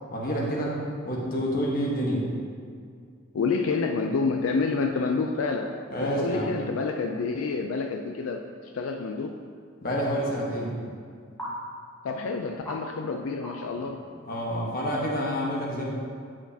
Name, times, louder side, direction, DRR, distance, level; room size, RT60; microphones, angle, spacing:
voice 1, 0.1-0.8 1.0-2.3 5.9-6.5 9.8-10.8 14.2-15.8, equal, 45° left, -3 dB, 1.2 m, -28 dB
voice 2, 3.3-5.7 6.0-9.4 12.0-14.0, left 4 dB, 90° left, 4 dB, 0.4 m, -28 dB
sound 1, 9.2-9.3 11.4-11.5 12.0-12.1 12.6-12.8 13.4-13.5 13.8-13.9 14.3-14.5, equal, 10° left, 1.0 m, -38 dB
8.2 x 6.0 x 2.8 m, 2.2 s
head